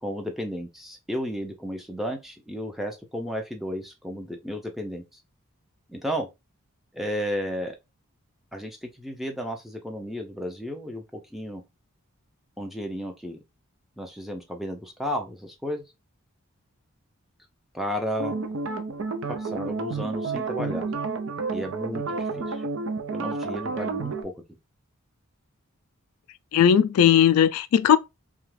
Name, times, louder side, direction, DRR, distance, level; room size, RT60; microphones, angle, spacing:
voice 1, 0.0-5.0 5.9-6.3 6.9-7.8 8.5-11.0 11.3-11.6 12.6-13.4 14.0-15.8 17.7-18.6 19.3-20.9 21.5-22.6 23.1-24.3, equal, ahead, 0.5 m, -33 dB
sound 1, 18.2-24.2, right 4 dB, 60° right, 0.4 m, -30 dB
voice 2, 26.5-28.0, left 9 dB, 85° left, 0.3 m, -18 dB
2.9 x 2.4 x 3.1 m
head